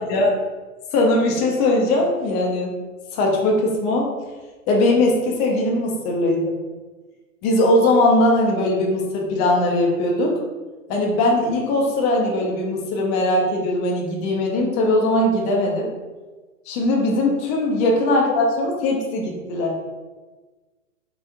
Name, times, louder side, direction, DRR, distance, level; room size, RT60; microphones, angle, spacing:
voice 1, 0.9-2.7 3.1-4.1 4.7-6.5 7.4-10.4 10.9-15.9 16.7-19.8, left 1 dB, 15° left, -1 dB, 0.4 m, -20 dB
4.4 x 2.4 x 3.5 m, 1.3 s
hypercardioid pair, 120°, 42 cm